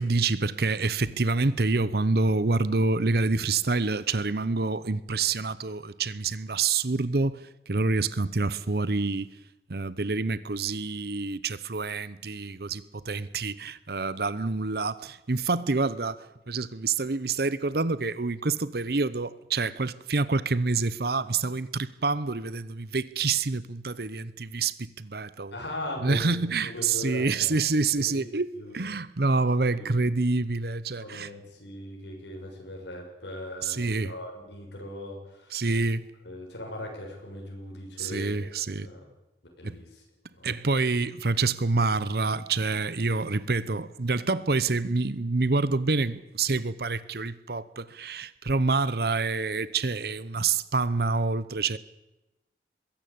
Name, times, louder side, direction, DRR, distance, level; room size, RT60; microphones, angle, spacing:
voice 1, 0.0-9.3 9.7-25.5 26.0-31.3 33.6-34.1 35.5-36.1 38.0-38.9 39.6-39.8 40.4-51.8, right 3 dB, 60° right, 0.9 m, -27 dB
voice 2, 25.5-27.6 28.0-28.3 28.5-28.7 29.7-30.0 31.0-35.7 36.2-39.1 39.6-40.0 40.3-40.5, left 1 dB, 75° left, 6.5 m, -39 dB
22.0 x 16.0 x 8.7 m
head